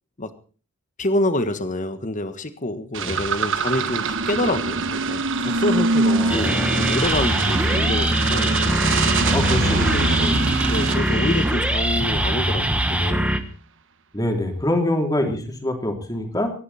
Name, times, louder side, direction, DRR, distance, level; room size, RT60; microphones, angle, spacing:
voice 1, 1.0-8.7 9.2-9.3 9.7-10.1 10.7-13.4 15.2-15.4, left 1 dB, 35° left, 10 dB, 1.5 m, -27 dB
sound 1, 2.9-12.5, right 3 dB, 60° right, 1.3 m, -24 dB
voice 2, 6.1-6.8 9.3-10.4 14.1-16.5, left 1 dB, 15° left, 3 dB, 3.3 m, -25 dB
sound 2, 6.3-13.4, right 1 dB, 5° right, 1.4 m, -22 dB
25.0 x 11.0 x 4.3 m, 0.39 s
head